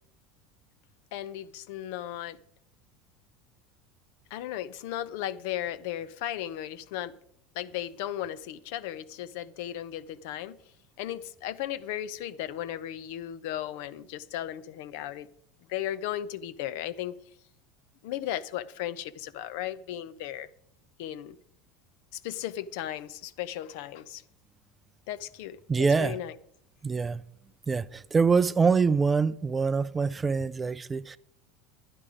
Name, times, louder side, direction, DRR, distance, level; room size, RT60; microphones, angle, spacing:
voice 1, 1.1-2.4 4.3-7.1 7.5-10.6 11.0-15.3 15.7-17.1 18.0-20.5 21.0-21.4 22.1-24.2 25.1-25.6 26.0-26.3, left 12 dB, 70° left, 0.7 m, -35 dB
voice 2, 25.7-26.2 26.8-27.2 27.7-31.2, right 5 dB, 15° right, 0.4 m, -25 dB
11.0 x 11.0 x 5.0 m
supercardioid pair, 135°, 0 cm